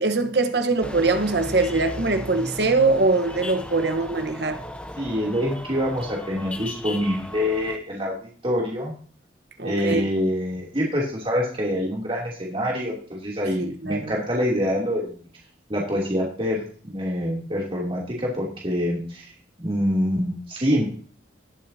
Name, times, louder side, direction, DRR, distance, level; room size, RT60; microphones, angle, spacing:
voice 1, 0.0-4.6 9.6-10.0 13.6-14.1, right 3 dB, 60° right, 1.2 m, -22 dB
sound 1, 0.8-7.8, left 1 dB, 5° left, 0.9 m, -36 dB
voice 2, 5.0-8.9 9.6-15.2 15.7-19.3 19.6-20.8, equal, 30° right, 2.9 m, -26 dB
19.0 x 7.4 x 2.8 m
head